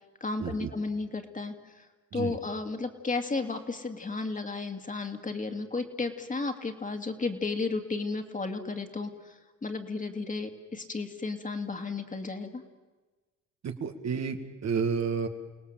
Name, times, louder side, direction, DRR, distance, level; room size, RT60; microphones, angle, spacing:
voice 1, 0.2-1.9 2.1-12.6, left 3 dB, 25° left, 6 dB, 2.4 m, -33 dB
voice 2, 13.6-15.3, right 6 dB, 60° right, 6 dB, 2.2 m, -31 dB
30.0 x 18.0 x 7.6 m, 1.3 s
cardioid pair, 90°, 30 cm